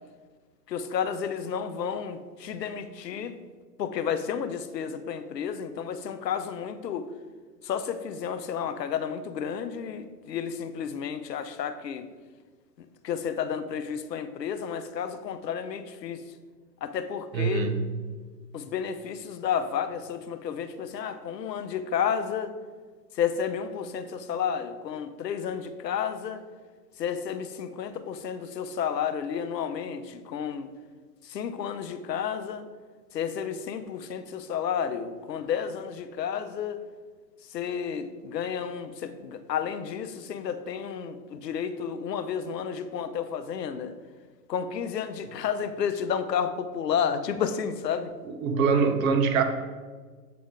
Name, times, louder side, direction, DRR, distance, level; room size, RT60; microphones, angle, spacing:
voice 1, 0.7-3.3 3.8-7.1 7.6-12.1 12.8-16.2 16.8-17.7 18.5-22.5 23.1-26.4 27.0-30.7 31.2-32.7 33.1-36.8 37.5-43.9 44.5-48.1, left 7 dB, 90° left, 10 dB, 0.7 m, -31 dB
voice 2, 17.3-17.8 48.2-49.4, right 5 dB, 55° right, 6 dB, 0.8 m, -24 dB
7.6 x 3.5 x 3.7 m, 1.5 s
hypercardioid pair, 120°, 48 cm